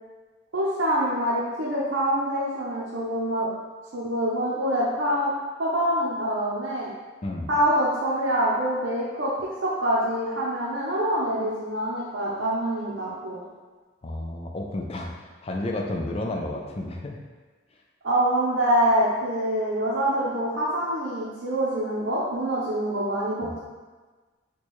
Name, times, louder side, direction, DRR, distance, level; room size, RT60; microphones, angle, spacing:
voice 1, 0.5-3.5 3.9-5.3 5.6-6.9 7.5-13.4 18.0-23.6, right 1 dB, 65° right, -8 dB, 0.7 m, -25 dB
voice 2, 14.0-17.2 23.4-23.6, left 1 dB, 30° left, 1 dB, 0.4 m, -31 dB
4.3 x 2.3 x 3.0 m, 1.3 s
head